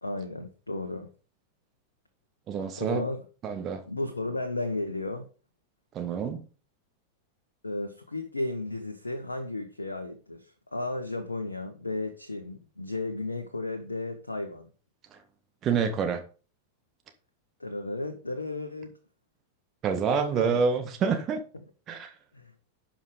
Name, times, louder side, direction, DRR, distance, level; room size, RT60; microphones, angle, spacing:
voice 1, 0.0-1.1 2.8-3.2 3.9-5.3 7.6-14.7 17.6-18.9 20.4-20.6 22.3-22.5, left 2 dB, 80° left, 1.1 m, -34 dB
voice 2, 2.5-3.0 3.4-3.8 5.9-6.4 15.6-16.2 19.8-21.4 21.9-22.1, right 6 dB, 30° right, 1.8 m, -27 dB
11.0 x 5.2 x 5.2 m
figure-of-eight pair, 90°, 0 cm